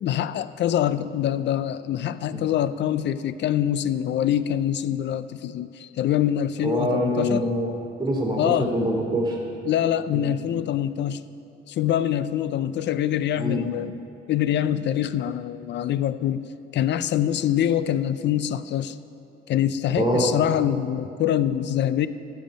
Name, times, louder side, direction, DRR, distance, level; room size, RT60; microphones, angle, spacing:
voice 1, 0.0-7.5 8.4-8.7 9.6-11.2 11.7-14.0 14.3-16.5 16.7-19.0 19.5-22.1, left 11 dB, 65° left, 15 dB, 0.5 m, -24 dB
voice 2, 6.6-7.7 8.0-9.4 10.1-10.3 13.4-13.7 20.0-20.3, right 1 dB, 20° right, -2 dB, 2.7 m, -25 dB
13.5 x 7.1 x 5.1 m, 2.8 s
cardioid pair, 90°, 20 cm